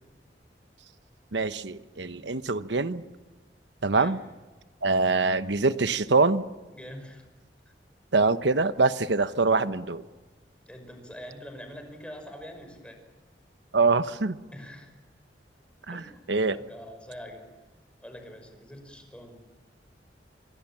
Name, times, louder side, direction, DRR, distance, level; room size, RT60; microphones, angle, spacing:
voice 1, 1.3-3.0 3.8-4.2 4.8-6.4 8.1-10.0 13.7-14.4 15.9-16.0 16.3-16.6, right 3 dB, 80° right, 12 dB, 1.1 m, -24 dB
voice 2, 6.7-7.2 7.7-7.8 10.7-13.0 14.5-14.9 15.9-17.5 18.0-19.5, equal, 5° left, 5 dB, 5.6 m, -44 dB
27.5 x 24.0 x 7.5 m, 1.3 s
head